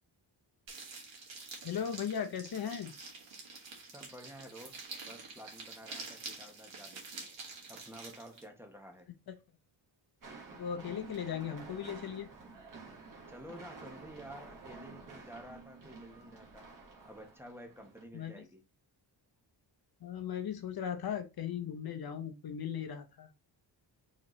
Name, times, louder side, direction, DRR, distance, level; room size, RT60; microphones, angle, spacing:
sound 1, 0.7-8.5, right 4 dB, 70° right, 1.9 m, -47 dB
voice 1, 1.6-2.9 10.6-12.3 18.1-18.4 20.0-23.3, left 8 dB, 55° left, 0.7 m, -37 dB
voice 2, 3.9-4.8 5.0-7.3 7.7-9.1 13.3-16.7 17.0-18.6, equal, 5° right, 0.9 m, -51 dB
sound 2, 10.2-18.0, right 4 dB, 45° right, 1.6 m, -51 dB
4.4 x 4.0 x 3.1 m
wide cardioid pair, 130°, 46 cm